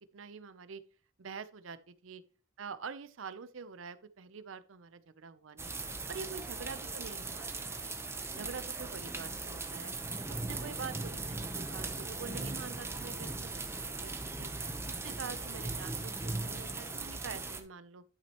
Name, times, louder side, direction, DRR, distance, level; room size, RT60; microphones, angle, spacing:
voice 1, 0.1-0.8 1.2-1.8 2.0-2.2 2.6-5.7 6.1-7.5 7.8-7.9 8.3-9.9 10.3-14.5 14.9-16.1 16.4-18.0, right 5 dB, 75° right, 0.6 m, -46 dB
sound 1, 5.6-17.6, right 3 dB, 15° right, 0.8 m, -39 dB
11.5 x 6.1 x 2.9 m
head